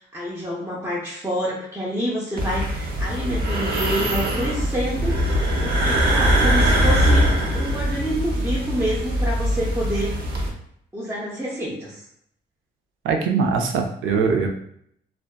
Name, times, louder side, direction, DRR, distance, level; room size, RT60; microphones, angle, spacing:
voice 1, 0.1-5.1 5.6-7.3 7.5-10.1 10.9-12.0, equal, 10° right, -6 dB, 0.6 m, -27 dB
sound 1, 2.4-10.5, equal, 50° right, 0.6 m, -21 dB
voice 2, 13.0-14.5, right 5 dB, 90° right, 3 dB, 0.5 m, -21 dB
2.5 x 2.2 x 2.3 m, 0.70 s
cardioid pair, 90°, 20 cm